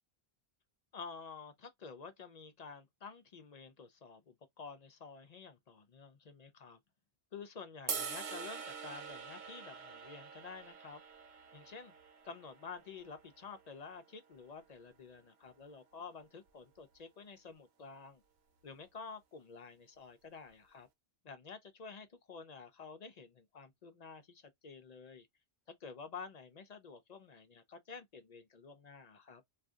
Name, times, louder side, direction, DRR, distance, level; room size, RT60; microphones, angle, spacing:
voice 1, 0.9-6.8 7.3-11.0 11.5-11.9 12.2-18.2 18.6-20.9 21.2-25.3 25.7-29.4, left 5 dB, 50° left, 0.6 m, -50 dB
sound 1, 7.9-14.1, right 6 dB, 80° right, 0.9 m, -45 dB
2.6 x 2.4 x 3.4 m
omnidirectional pair, 1.0 m